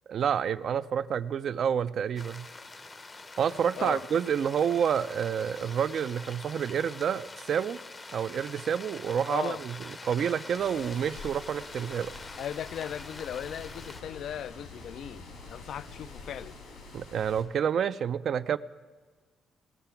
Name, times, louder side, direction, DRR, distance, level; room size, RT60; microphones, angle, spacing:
voice 1, 0.1-2.5 3.4-7.8 8.1-12.1 16.9-18.6, right 8 dB, 60° right, 0.4 m, -29 dB
sound 1, 2.2-14.0, left 3 dB, 30° left, 0.6 m, -45 dB
voice 2, 9.3-9.6 12.4-16.5, left 9 dB, 70° left, 0.3 m, -37 dB
sound 2, 10.6-17.4, left 3 dB, 85° left, 2.6 m, -46 dB
19.0 x 6.7 x 5.8 m
cardioid pair, 90°, 0 cm